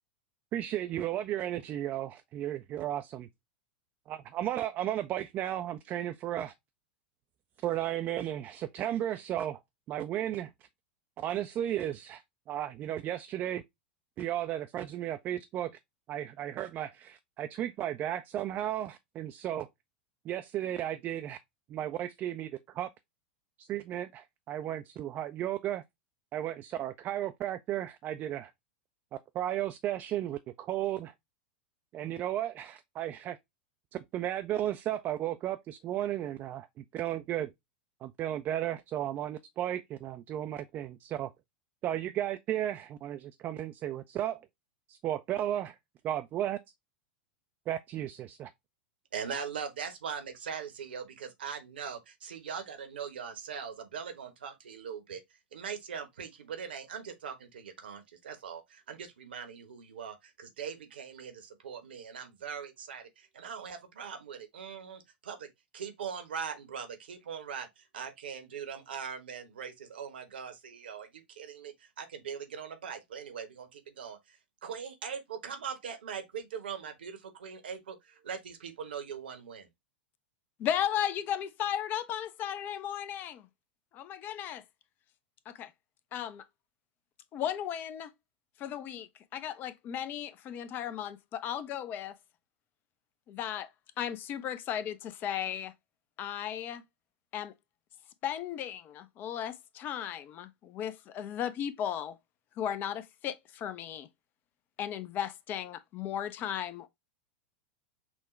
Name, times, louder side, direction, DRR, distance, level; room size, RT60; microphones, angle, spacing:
voice 1, 0.5-3.3 4.1-6.5 7.6-9.6 9.9-10.5 11.2-12.2 12.5-13.6 14.2-15.7 16.1-19.7 20.3-21.4 21.7-22.9 23.6-25.8 26.3-28.5 29.3-31.1 31.9-33.4 33.9-36.7 36.9-37.5 38.0-41.3 41.8-44.4 44.9-45.8 46.0-46.6 47.7-48.5, right 12 dB, 35° right, 0.4 m, -34 dB
voice 2, 49.1-55.2 55.5-79.7, right 7 dB, 70° right, 1.0 m, -41 dB
voice 3, 80.6-83.5 83.9-84.6 85.5-85.7 86.1-86.4 87.3-88.1 88.6-92.1 93.3-93.7 94.0-95.7 96.2-96.8 97.3-97.5 98.2-102.2 102.6-104.1 104.8-106.9, left 10 dB, 35° left, 0.5 m, -35 dB
6.1 x 2.2 x 3.1 m
figure-of-eight pair, 90°, 6 cm